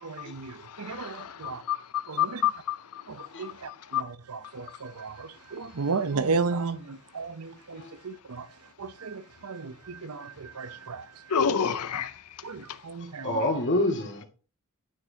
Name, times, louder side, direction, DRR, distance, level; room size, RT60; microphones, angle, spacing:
voice 1, 0.0-1.6 2.1-2.4 3.1-8.5 8.8-11.4 12.4-13.5, right 4 dB, 80° right, 0.7 m, -34 dB
voice 2, 1.0-1.3 1.7-2.8 3.9-4.0 11.3-12.1, left 8 dB, 90° left, 0.6 m, -27 dB
voice 3, 13.2-14.2, left 1 dB, 55° left, 2.1 m, -26 dB
9.8 x 6.2 x 2.8 m
head